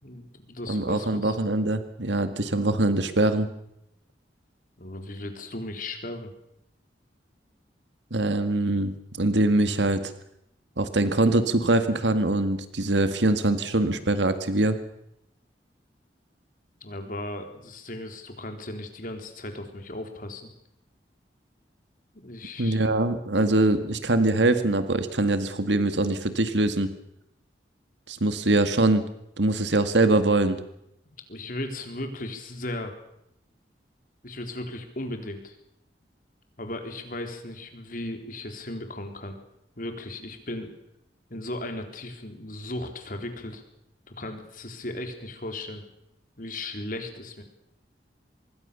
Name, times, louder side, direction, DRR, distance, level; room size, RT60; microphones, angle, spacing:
voice 1, 0.0-1.4 4.8-6.3 16.8-20.5 22.2-22.8 31.3-33.0 34.2-35.6 36.6-39.4 39.8-40.7 41.3-43.6 44.1-45.8 46.4-47.4, left 1 dB, 50° left, 5 dB, 3.9 m, -36 dB
voice 2, 0.7-3.5 8.1-10.1 10.8-14.8 22.6-26.9 28.1-29.1 29.4-30.6, right 2 dB, 90° right, 10 dB, 1.9 m, -23 dB
26.0 x 21.5 x 7.0 m, 0.79 s
head